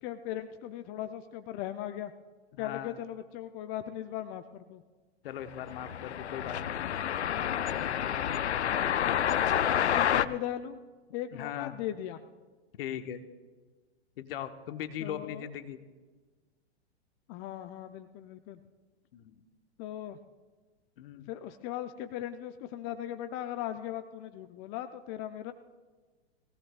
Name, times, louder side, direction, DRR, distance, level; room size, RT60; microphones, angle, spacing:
voice 1, 0.0-2.1 2.6-4.8 8.7-9.3 9.8-10.8 11.1-12.2 15.0-15.5 17.3-18.6 19.8-20.2 21.3-25.5, left 12 dB, 35° left, 9 dB, 0.6 m, -38 dB
voice 2, 2.5-3.0 5.2-6.9 7.8-8.2 10.1-10.2 11.3-11.7 12.8-13.2 14.2-15.8 19.1-19.3 21.0-21.3, left 10 dB, 60° left, 9 dB, 1.2 m, -39 dB
sound 1, 5.5-10.3, left 9 dB, 85° left, 0.6 m, -29 dB
21.0 x 16.5 x 2.4 m, 1.3 s
hypercardioid pair, 110°, 33 cm